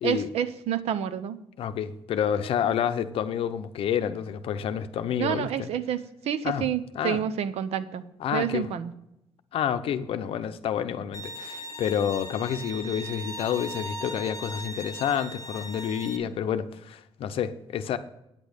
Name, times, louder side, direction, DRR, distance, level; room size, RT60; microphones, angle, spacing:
voice 1, 0.0-1.4 5.2-6.0 6.2-8.1 8.3-8.9, right 9 dB, 85° right, 0.7 m, -28 dB
voice 2, 1.6-5.7 6.4-6.7 6.9-7.2 8.2-8.7 9.5-18.0, left 9 dB, 65° left, 0.6 m, -29 dB
Bowed string instrument, 11.1-16.2, equal, 35° left, 0.9 m, -39 dB
9.0 x 8.3 x 5.1 m
cardioid pair, 175°, 10 cm